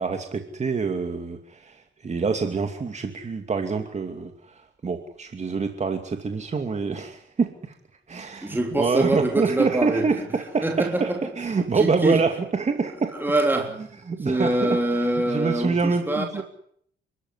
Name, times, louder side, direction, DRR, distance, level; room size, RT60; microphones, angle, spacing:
voice 1, 0.0-7.7 8.1-11.1 11.4-13.1 14.1-16.4, right 4 dB, 35° right, 5 dB, 2.6 m, -26 dB
voice 2, 8.4-10.3 10.6-11.3 11.7-12.2 13.2-13.9 14.2-16.4, right 2 dB, 10° right, 2 dB, 3.6 m, -24 dB
29.5 x 13.5 x 9.9 m, 0.66 s
cardioid pair, 90°, 20 cm